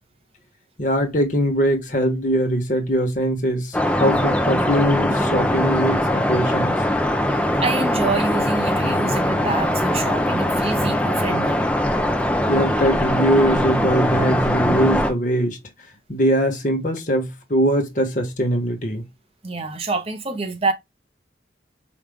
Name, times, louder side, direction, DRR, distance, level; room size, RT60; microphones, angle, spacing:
voice 1, 0.8-3.7 4.0-6.8 12.5-15.6 16.1-19.0, equal, 45° left, 1.1 m, -21 dB
sound 1, 3.7-15.1, left 1 dB, 5° left, 0.4 m, -21 dB
voice 2, 7.6-11.6 19.4-20.7, right 3 dB, 30° right, 0.8 m, -26 dB
5.0 x 2.4 x 3.4 m
head